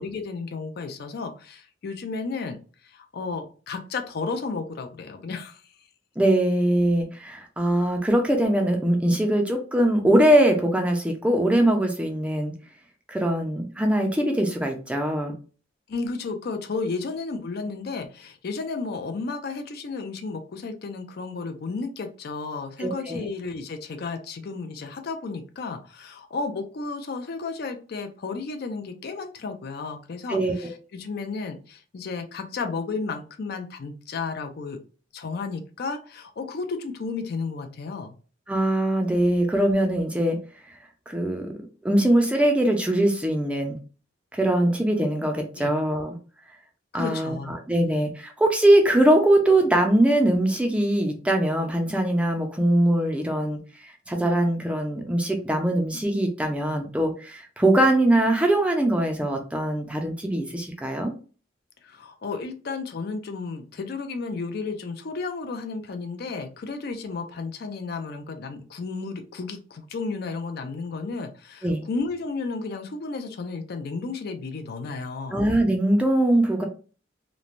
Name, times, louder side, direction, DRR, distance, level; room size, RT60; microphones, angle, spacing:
voice 1, 0.0-5.6 15.9-34.8 35.1-38.2 45.6-45.7 46.9-47.6 47.8-48.0 61.8-75.4, left 4 dB, 55° left, 6 dB, 0.4 m, -33 dB
voice 2, 6.2-12.5 13.1-15.3 22.8-23.3 30.3-30.7 38.5-40.4 40.7-40.8 41.1-43.8 44.3-46.2 46.9-61.1 71.6-71.8 75.3-76.6, right 1 dB, 5° right, 3 dB, 0.4 m, -22 dB
3.1 x 2.1 x 2.5 m, 0.36 s
head